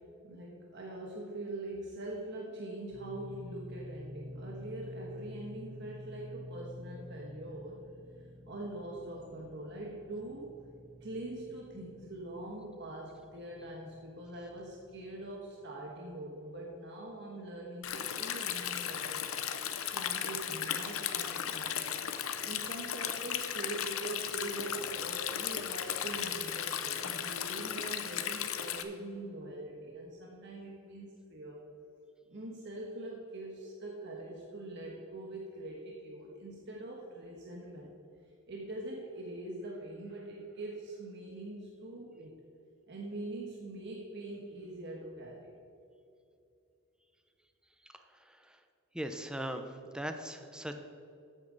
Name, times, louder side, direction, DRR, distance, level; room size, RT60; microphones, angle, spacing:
voice 1, 0.0-7.8 8.5-10.5 11.0-19.3 19.9-21.8 22.1-31.7 32.3-37.9 38.5-42.4 42.9-45.6, right 1 dB, 55° right, -2 dB, 1.4 m, -43 dB
sound 1, 2.9-15.3, left 1 dB, 75° right, 2.4 m, -50 dB
Stream, 17.8-28.8, left 9 dB, 80° left, 0.7 m, -36 dB
voice 2, 47.8-48.6 48.9-50.7, right 1 dB, 5° right, 6 dB, 0.7 m, -40 dB
13.5 x 8.8 x 4.0 m, 2.5 s
head